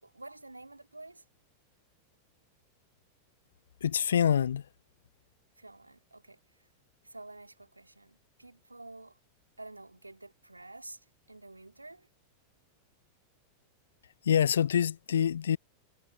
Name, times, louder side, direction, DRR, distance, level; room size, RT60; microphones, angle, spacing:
voice 1, 0.0-1.2 5.6-6.4 7.0-9.2 9.6-11.0 11.3-12.1, right 2 dB, 85° right, 3.2 m, -49 dB
voice 2, 3.8-4.7 14.2-15.6, left 8 dB, 65° left, 0.8 m, -26 dB
figure-of-eight pair, 90°, 0 cm